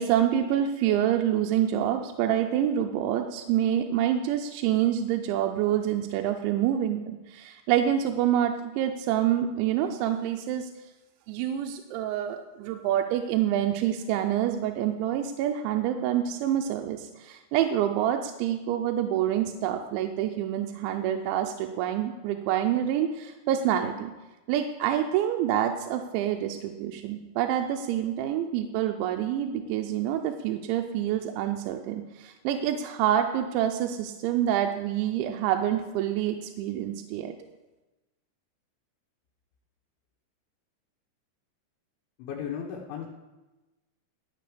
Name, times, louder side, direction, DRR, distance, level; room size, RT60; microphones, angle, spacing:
voice 1, 0.0-10.7 11.3-24.1 24.5-37.4, right 10 dB, 85° right, 5 dB, 3.0 m, -27 dB
voice 2, 42.2-43.1, left 8 dB, 80° left, -2 dB, 3.4 m, -35 dB
12.0 x 7.8 x 5.0 m, 1.1 s
omnidirectional pair, 5.3 m